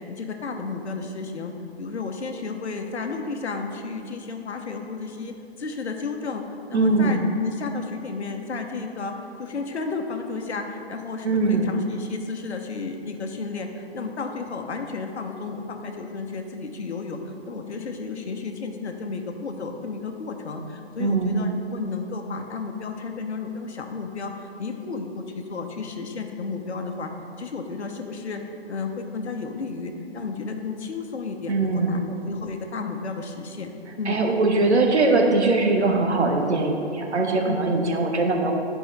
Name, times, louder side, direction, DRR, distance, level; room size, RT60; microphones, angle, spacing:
voice 1, 0.1-17.2 17.5-27.1 27.4-28.4 28.7-32.0 32.3-34.2 37.4-37.7, left 4 dB, 90° left, 4 dB, 1.0 m, -32 dB
voice 2, 6.7-7.2 11.2-11.7 21.0-21.4 31.5-32.0 34.0-38.5, right 3 dB, 90° right, 1 dB, 1.2 m, -21 dB
10.5 x 4.7 x 3.3 m, 2.5 s
hypercardioid pair, 140°, 33 cm